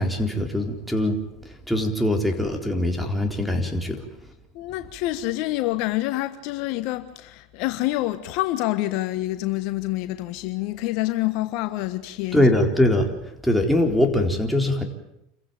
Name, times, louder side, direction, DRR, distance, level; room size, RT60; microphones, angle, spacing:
voice 1, 0.0-4.0 12.3-13.1 13.4-14.8, left 1 dB, ahead, 4.1 m, -22 dB
voice 2, 4.5-12.5, left 17 dB, 60° left, 1.4 m, -27 dB
28.5 x 15.5 x 8.9 m
hypercardioid pair, 100°, 0 cm